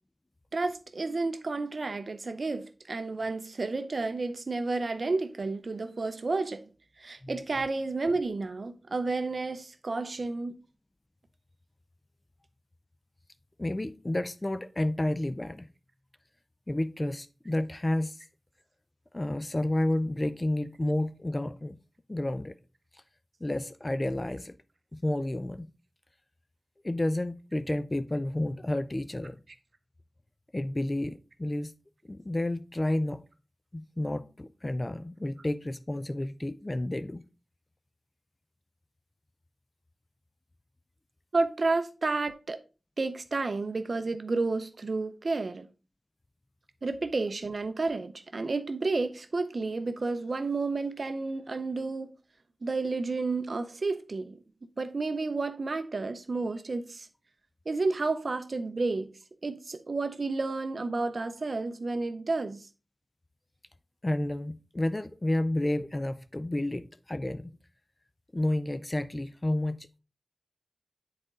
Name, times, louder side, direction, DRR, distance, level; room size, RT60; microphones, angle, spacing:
voice 1, 0.5-6.7 7.0-10.6 41.3-42.6 43.0-45.7 46.8-52.1 52.6-54.4 54.8-57.1 57.7-59.1 59.4-62.7, right 3 dB, 65° right, 0.5 m, -31 dB
voice 2, 13.6-15.7 16.7-18.2 19.1-21.8 22.1-22.6 23.4-24.5 24.9-25.7 26.8-29.4 30.5-31.7 32.0-33.2 33.7-37.3 64.0-67.6 68.3-69.9, left 1 dB, 30° left, 0.4 m, -30 dB
7.6 x 4.2 x 3.6 m
wide cardioid pair, 70°, 0 cm